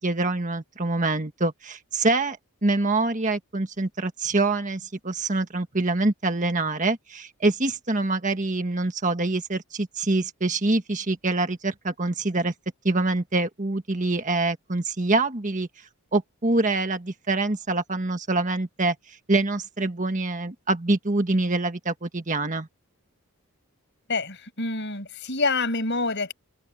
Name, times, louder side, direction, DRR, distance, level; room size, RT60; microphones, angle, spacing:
voice 1, 0.0-12.5 12.8-15.7 16.1-22.7, right 2 dB, 35° right, 1.5 m, -25 dB
voice 2, 24.1-26.3, left 3 dB, 50° left, 6.8 m, -27 dB
open air
head